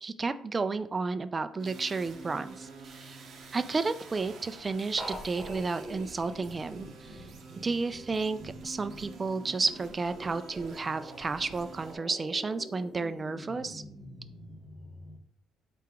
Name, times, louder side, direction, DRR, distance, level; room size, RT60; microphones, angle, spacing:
voice 1, 0.0-3.2 3.5-7.2 7.6-13.8, right 4 dB, 30° right, 11 dB, 0.3 m, -32 dB
sound 1, 1.6-12.0, right 4 dB, 60° right, 0.8 m, -49 dB
sound 2, 5.0-15.2, equal, 10° right, 0.9 m, -45 dB
4.5 x 2.9 x 3.5 m, 0.63 s
cardioid pair, 105°, 0 cm